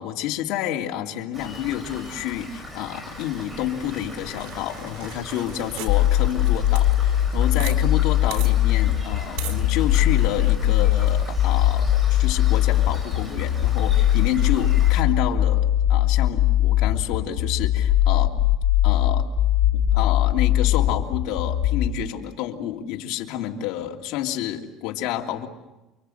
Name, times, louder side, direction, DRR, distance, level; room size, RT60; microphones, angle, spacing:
voice 1, 0.0-18.4 18.8-19.3 19.7-25.5, left 11 dB, 65° left, 1 dB, 2.9 m, -29 dB
Rain, 1.3-15.0, left 1 dB, 15° right, 6.2 m, -39 dB
sound 1, 3.8-7.8 8.0-8.1 8.3-8.5 9.4-9.6, right 10 dB, 90° right, 3.9 m, -39 dB
sound 2, 5.9-21.9, left 12 dB, 90° left, 1.6 m, -20 dB
29.5 x 24.5 x 8.0 m, 1.0 s
cardioid pair, 165°, 0 cm